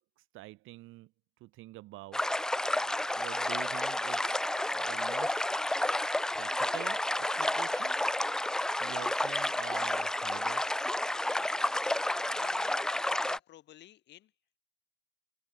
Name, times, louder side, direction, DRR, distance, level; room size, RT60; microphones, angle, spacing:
voice 1, 0.3-1.1 1.4-2.2 3.2-4.4 4.7-5.4 5.6-5.8 6.4-8.0 8.8-10.7, right 19 dB, 40° right, 1.8 m, -46 dB
sound 1, 2.1-13.4, left 1 dB, ahead, 0.4 m, -31 dB
voice 2, 12.3-14.3, left 13 dB, 35° left, 2.6 m, -53 dB
figure-of-eight pair, 85°, 31 cm